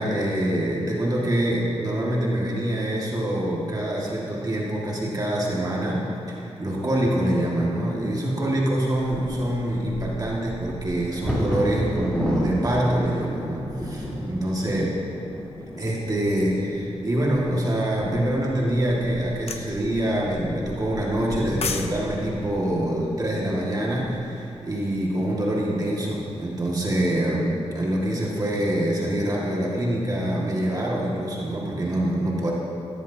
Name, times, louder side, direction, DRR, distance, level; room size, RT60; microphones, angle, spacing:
voice 1, 0.0-14.9 15.8-32.5, right 1 dB, 35° right, -4 dB, 1.9 m, -25 dB
Bird vocalization bird call bird song / Wind / Thunder, 8.8-24.7 25.4-25.5 25.8-26.2 26.6-27.2, equal, 10° left, 3.3 m, -34 dB
sound 1, 19.5-19.7 21.3-21.9 22.2-22.4, left 5 dB, 65° left, 0.7 m, -29 dB
17.0 x 14.0 x 2.8 m, 2.9 s
wide cardioid pair, 125°, 11 cm